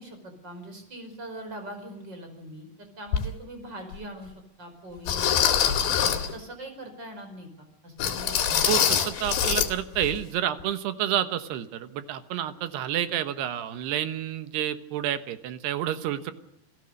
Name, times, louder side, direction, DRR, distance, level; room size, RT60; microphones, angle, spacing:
voice 1, 0.0-4.3 4.6-5.4 5.7-5.8 6.3-8.4 8.7-9.0, right 1 dB, 25° right, 6 dB, 5.4 m, -42 dB
sound 1, 3.1-3.3 3.9-4.0 5.1-6.3 8.0-9.7 10.0-10.2 10.6-10.7, left 9 dB, 85° left, 4.2 m, -24 dB
voice 2, 8.6-16.3, right 11 dB, 80° right, 11 dB, 3.3 m, -29 dB
27.5 x 15.5 x 6.5 m, 0.82 s
omnidirectional pair, 4.7 m